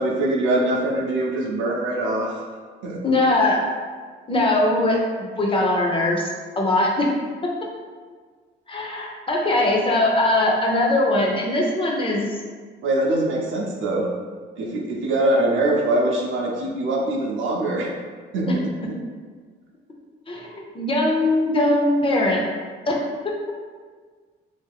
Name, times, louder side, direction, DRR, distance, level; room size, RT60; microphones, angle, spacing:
voice 1, 0.0-2.3 2.8-3.0 12.8-14.1 14.6-17.9 18.3-18.6, right 1 dB, 75° right, -1 dB, 0.7 m, -23 dB
voice 2, 3.0-3.6 4.3-6.3 6.6-7.1 7.4-7.5 8.7-12.4 18.5-18.6 20.3-22.4 22.9-23.3, left 2 dB, 25° left, -1 dB, 0.6 m, -21 dB
3.4 x 2.8 x 2.3 m, 1.5 s
cardioid pair, 90°, 20 cm